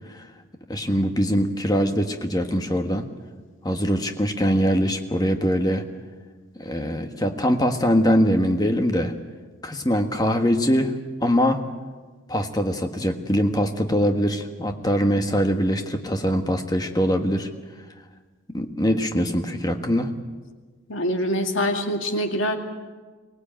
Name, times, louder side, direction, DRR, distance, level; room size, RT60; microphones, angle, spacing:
voice 1, 0.7-3.0 3.6-5.8 6.6-9.1 9.6-10.9 11.2-11.6 12.3-17.5 18.5-20.1, equal, 20° left, 6 dB, 1.5 m, -22 dB
voice 2, 20.9-22.6, equal, 70° left, 4 dB, 2.3 m, -24 dB
24.0 x 18.5 x 8.9 m, 1.4 s
head